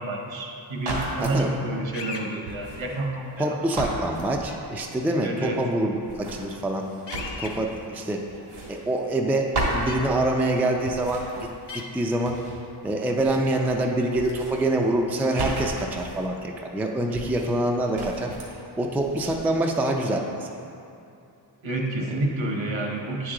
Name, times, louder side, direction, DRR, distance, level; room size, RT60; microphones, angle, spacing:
voice 1, 0.0-4.0 5.2-5.6 21.6-23.3, right 2 dB, 70° right, 1 dB, 1.1 m, -29 dB
sound 1, 0.8-1.4 2.5-3.4 3.7-4.8 6.0-7.9 8.3-9.3 9.5-10.5 10.8-12.7 12.9-13.8 14.1-16.3 17.1-17.7 17.9-18.6 19.0-19.4, right 1 dB, 90° right, 1.6 m, -34 dB
voice 2, 1.2-1.5 3.4-6.9 7.4-8.2 8.7-11.5 11.7-12.4 12.8-20.5, right 1 dB, 5° right, 1 dB, 0.3 m, -25 dB
sound 2, 1.9-2.3 4.5-4.6 7.1-7.5 9.9-10.0 11.7-11.8, left 4 dB, 60° left, 0.8 m, -35 dB
9.4 x 4.7 x 3.7 m, 2.7 s
wide cardioid pair, 125°, 47 cm